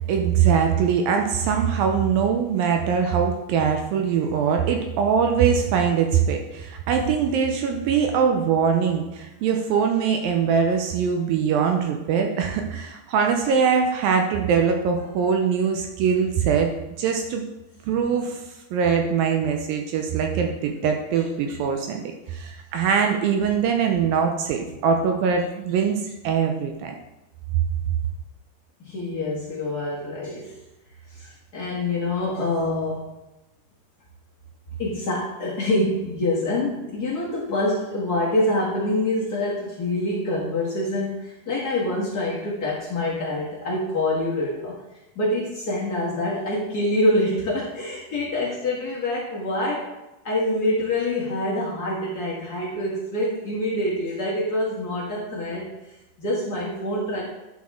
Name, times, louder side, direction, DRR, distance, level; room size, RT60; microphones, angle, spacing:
voice 1, 0.1-16.7 17.0-17.4 17.9-18.4 18.7-22.0 22.3-27.0, right 6 dB, 80° right, 3 dB, 2.2 m, -22 dB
voice 2, 28.8-30.5 31.1-33.0 34.8-44.8 45.1-49.9 50.2-55.7 56.2-57.2, left 1 dB, 75° left, -6 dB, 0.8 m, -26 dB
10.5 x 6.3 x 3.6 m, 0.97 s
omnidirectional pair, 4.5 m